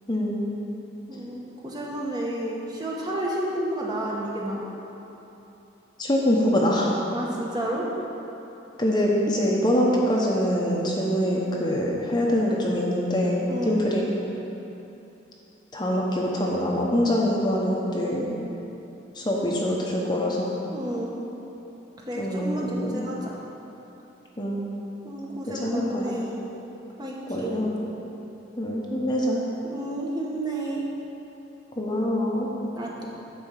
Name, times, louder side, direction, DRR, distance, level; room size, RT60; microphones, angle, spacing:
voice 1, 0.1-0.5 6.0-6.9 8.8-14.1 15.7-18.4 19.2-20.6 22.2-23.0 24.4-24.7 25.5-26.1 27.3-27.9 28.6-29.4 31.8-32.5, equal, 25° left, -3 dB, 0.9 m, -24 dB
voice 2, 1.1-4.6 7.1-7.9 13.5-13.9 20.7-21.2 22.0-23.4 25.0-26.4 27.0-27.7 29.6-30.9 32.7-33.0, right 1 dB, 20° right, -3 dB, 1.1 m, -31 dB
9.8 x 4.4 x 7.3 m, 3.0 s
head